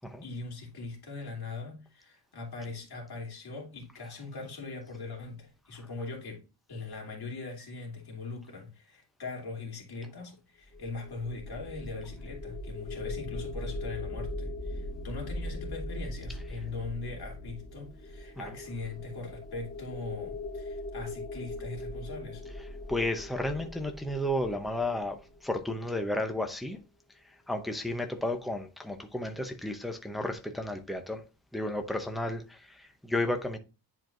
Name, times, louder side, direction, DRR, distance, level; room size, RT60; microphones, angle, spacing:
voice 1, 0.2-6.4 6.7-22.5, left 3 dB, 60° left, 2.8 m, -40 dB
sound 1, 10.6-25.7, left 1 dB, 20° left, 1.0 m, -40 dB
voice 2, 22.9-26.8 27.2-31.2 31.5-33.6, left 1 dB, ahead, 0.7 m, -33 dB
10.0 x 4.5 x 2.5 m
wide cardioid pair, 160°, 42 cm